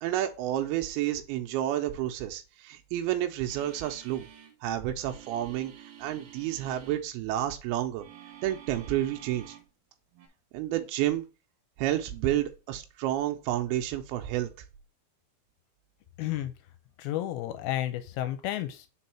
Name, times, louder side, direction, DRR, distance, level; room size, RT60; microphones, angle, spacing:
voice 1, 0.0-4.3 4.6-8.1 8.4-9.6 10.5-11.2 11.8-14.5, right 12 dB, 80° right, 5 dB, 2.5 m, -30 dB
sound 1, 3.5-4.6 5.0-7.0 8.0-9.7 10.1-10.3, right 10 dB, 60° right, 1.9 m, -50 dB
voice 2, 16.2-16.5 17.0-18.9, left 13 dB, 80° left, 10 dB, 2.4 m, -32 dB
5.4 x 4.1 x 4.3 m, 0.31 s
omnidirectional pair, 4.6 m